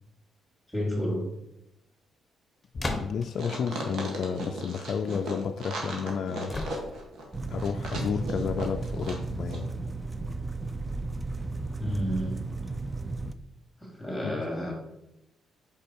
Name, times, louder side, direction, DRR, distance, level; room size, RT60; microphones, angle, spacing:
voice 1, 0.7-1.2 11.8-12.4 13.8-14.7, equal, 5° right, -3 dB, 2.5 m, -30 dB
voice 2, 2.8-6.5 7.5-9.7 14.2-14.4, left 6 dB, 60° left, 7 dB, 0.3 m, -31 dB
sound 1, 2.8-3.4 6.5-7.2, left 2 dB, 20° left, 0.9 m, -34 dB
sound 2, 3.3-9.2 9.5-9.6, right 1 dB, 70° right, 1.6 m, -36 dB
sound 3, 7.3-13.3, right 3 dB, 20° right, 0.4 m, -34 dB
5.2 x 4.7 x 4.5 m, 0.86 s
cardioid pair, 95°, 0 cm